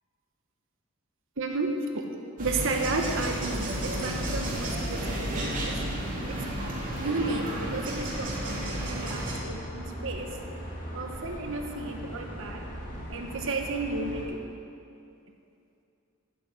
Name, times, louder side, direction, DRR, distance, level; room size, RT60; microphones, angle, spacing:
voice 1, 1.4-2.0 2.4-6.5 7.0-10.4 10.9-12.6 13.1-14.5, right 3 dB, 60° right, 3 dB, 1.3 m, -33 dB
sound 1, 2.4-9.3, right 1 dB, 40° right, 3.2 m, -33 dB
sound 2, 3.1-14.2, equal, 40° left, 4.2 m, -40 dB
11.5 x 9.6 x 9.2 m, 2.6 s
head